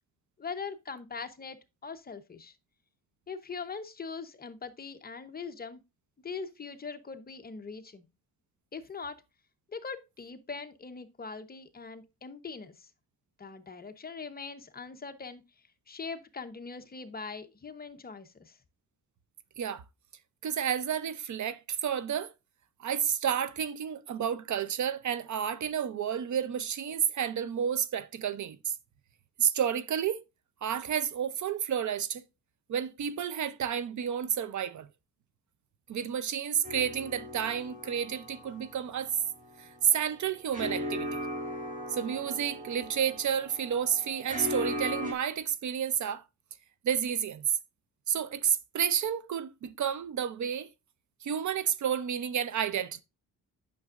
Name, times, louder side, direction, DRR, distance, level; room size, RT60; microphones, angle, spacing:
voice 1, 0.4-2.6 3.3-5.8 6.2-8.0 8.7-9.2 9.7-12.9 13.4-15.4 15.9-18.6, left 5 dB, 25° left, 0.8 m, -41 dB
voice 2, 20.4-22.3 22.8-28.7 29.4-30.2 30.6-32.3 32.7-34.9 35.9-39.1 39.6-41.2 41.9-46.3 46.8-47.4 48.1-50.7 51.2-53.0, right 8 dB, 50° right, 0.6 m, -30 dB
sound 1, 36.6-45.1, left 1 dB, 20° right, 2.0 m, -38 dB
9.3 x 6.0 x 2.4 m
cardioid pair, 135°, 37 cm